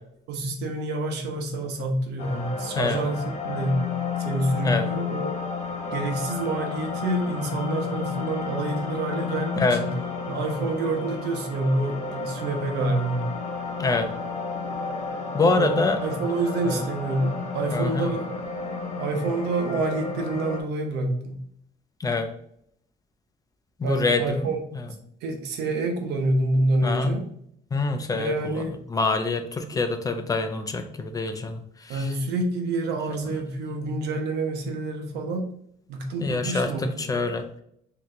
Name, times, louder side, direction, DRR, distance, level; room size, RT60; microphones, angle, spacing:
voice 1, 0.3-3.9 4.2-5.3 5.9-9.9 10.3-13.3 15.4-18.3 19.0-21.4 23.8-24.6 25.2-27.3 28.2-28.8 31.9-35.5 35.9-36.8, right 2 dB, 80° right, 3 dB, 0.9 m, -27 dB
sound 1, 2.2-20.6, left 5 dB, 40° left, 1.0 m, -32 dB
voice 2, 15.3-16.0 16.6-16.8 17.7-18.1 22.0-22.3 23.8-24.9 26.8-27.2 27.7-32.1 36.2-37.6, left 3 dB, 20° left, 7 dB, 0.5 m, -26 dB
3.7 x 2.9 x 3.3 m, 0.70 s
cardioid pair, 110°, 17 cm